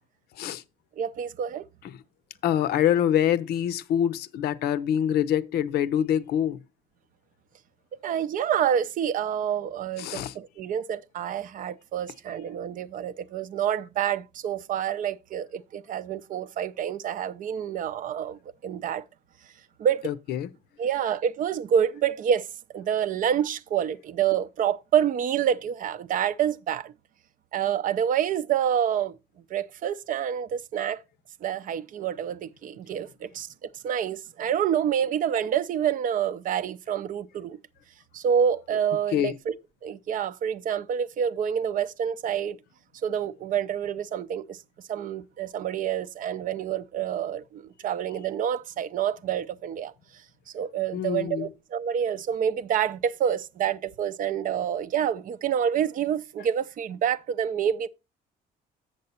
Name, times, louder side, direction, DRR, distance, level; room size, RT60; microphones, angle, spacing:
voice 1, 1.0-1.7 8.0-19.0 19.8-20.1 20.8-22.5 22.7-26.9 27.5-29.2 29.5-31.0 31.4-37.6 38.1-39.5 39.8-42.6 43.0-44.6 44.9-49.9 50.5-57.9, right 9 dB, 55° right, 0.5 m, -27 dB
voice 2, 2.4-6.6 10.0-10.3 20.0-20.5 39.1-39.3 50.9-51.5, left 10 dB, 70° left, 0.6 m, -25 dB
7.6 x 6.8 x 4.2 m
cardioid pair, 110°, 17 cm